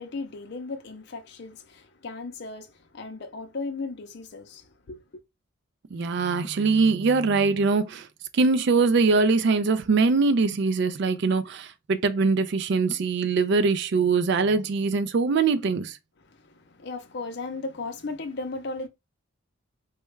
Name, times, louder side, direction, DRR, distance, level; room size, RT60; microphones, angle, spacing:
voice 1, 0.0-5.0 16.3-18.9, left 3 dB, 55° left, 0.6 m, -36 dB
voice 2, 5.9-8.1 8.3-16.0, right 4 dB, 55° right, 0.4 m, -22 dB
3.2 x 2.2 x 3.1 m
head